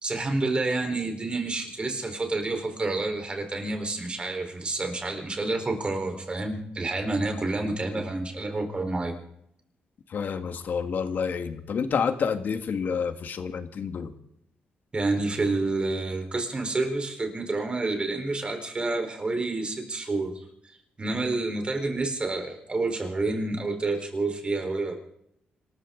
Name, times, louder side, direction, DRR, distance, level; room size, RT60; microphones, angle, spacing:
voice 1, 0.0-9.1 14.9-20.5 21.0-25.0, right 2 dB, 30° right, 4 dB, 4.2 m, -29 dB
voice 2, 10.1-14.1, left 6 dB, 60° left, 8 dB, 1.7 m, -29 dB
26.0 x 13.5 x 3.9 m, 0.73 s
cardioid pair, 90°, 3 cm